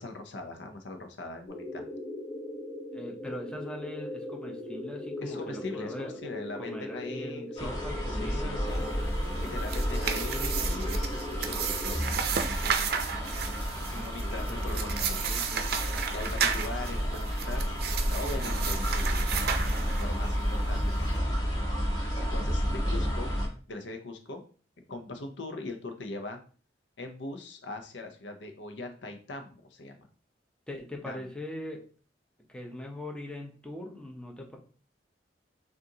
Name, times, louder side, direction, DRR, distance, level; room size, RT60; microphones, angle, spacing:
voice 1, 0.0-1.8 5.2-7.7 8.1-8.8 9.5-12.2 12.5-13.1 13.5-15.2 16.1-17.8 18.1-21.6 22.2-23.3 23.7-24.4 24.9-26.4 27.0-30.1 31.1-31.2, left 2 dB, 85° left, 6 dB, 0.7 m, -41 dB
sound 1, 1.5-12.0, left 1 dB, 45° left, 1.0 m, -40 dB
voice 2, 2.9-6.2 6.6-9.3 12.6-12.7 13.7-14.6 14.8-15.7 16.6-16.7 22.8-23.3 30.7-31.8 32.5-34.6, left 1 dB, 5° left, 1 dB, 0.7 m, -42 dB
sound 2, 7.6-23.5, equal, 25° left, 1.4 m, -31 dB
sound 3, 9.4-20.3, right 7 dB, 60° right, 0.5 m, -33 dB
6.3 x 2.5 x 2.8 m, 0.40 s
head